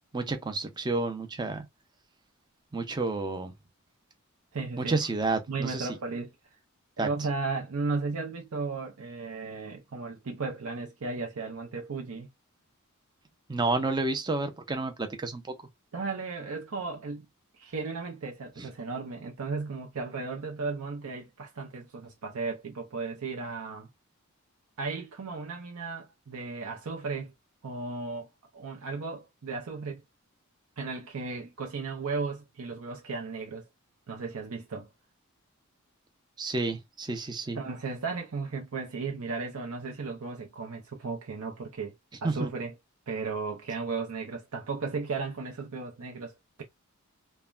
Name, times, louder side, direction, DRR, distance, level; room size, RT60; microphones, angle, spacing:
voice 1, 0.1-1.7 2.7-3.5 4.8-5.9 7.0-7.1 13.5-15.4 36.4-37.6 42.2-42.5, right 3 dB, 20° right, 0.5 m, -30 dB
voice 2, 4.5-5.0 5.5-6.3 7.0-12.3 15.9-17.3 17.6-23.9 24.8-27.3 27.6-28.3 28.5-30.0 30.8-33.7 34.1-34.9 37.5-41.9 42.2-42.7 43.1-46.6, right 4 dB, 75° right, 0.6 m, -35 dB
3.2 x 2.1 x 2.3 m
head